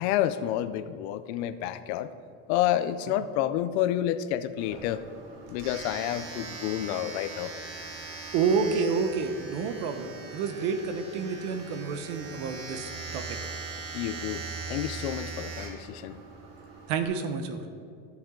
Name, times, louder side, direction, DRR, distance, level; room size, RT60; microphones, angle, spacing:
voice 1, 0.0-2.1 2.5-5.0 5.5-7.5 13.9-16.2, left 12 dB, 85° left, 11 dB, 0.6 m, -29 dB
Domestic sounds home sounds, 4.6-17.0, right 4 dB, 50° right, 1.5 m, -40 dB
voice 2, 8.3-13.4 16.9-17.7, right 5 dB, 75° right, 8 dB, 1.0 m, -29 dB
13.0 x 7.2 x 3.8 m, 2.3 s
cardioid pair, 170°, 32 cm